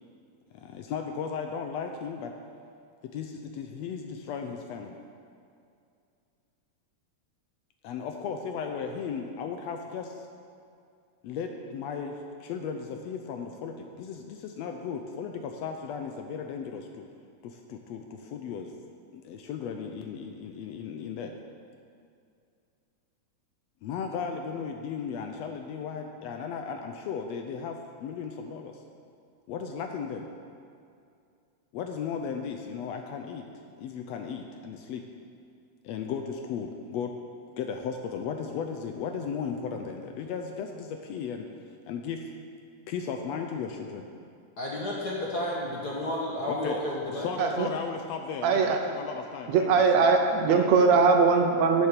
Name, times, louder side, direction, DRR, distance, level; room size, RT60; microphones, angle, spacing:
voice 1, 0.5-2.3 3.0-5.0 7.8-10.3 11.2-17.0 17.4-18.7 19.1-21.3 23.8-28.8 29.5-30.3 31.7-33.5 33.8-35.0 35.8-37.1 37.5-41.5 41.9-42.3 42.9-44.1 46.5-46.8 47.1-50.2 50.5-50.7, left 6 dB, 75° left, 4 dB, 1.7 m, -36 dB
voice 2, 44.6-47.3, left 1 dB, 45° left, -4 dB, 1.4 m, -31 dB
voice 3, 48.4-48.8 49.5-51.9, right 5 dB, 75° right, 4 dB, 2.0 m, -21 dB
10.5 x 7.5 x 6.6 m, 2.4 s
omnidirectional pair, 3.3 m